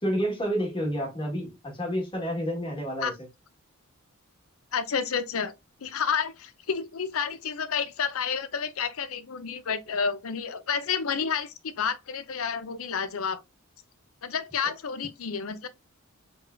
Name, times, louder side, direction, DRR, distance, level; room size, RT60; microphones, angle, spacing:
voice 1, 0.0-3.1, equal, 25° left, 1.7 m, -29 dB
voice 2, 4.7-5.5 5.8-13.4 14.2-15.7, left 6 dB, 70° left, 0.6 m, -30 dB
4.4 x 3.5 x 2.6 m
head